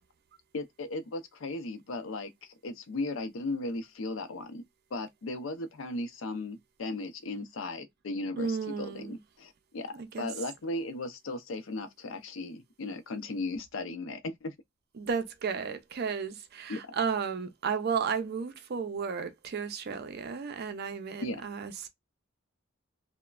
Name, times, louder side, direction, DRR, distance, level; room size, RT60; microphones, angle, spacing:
voice 1, 0.5-4.6 4.9-14.5 16.7-16.9 21.2-21.4, left 2 dB, 70° left, 0.5 m, -36 dB
voice 2, 8.4-9.2 10.0-10.3 15.0-21.9, right 6 dB, 50° right, 0.4 m, -33 dB
3.0 x 2.1 x 2.2 m
head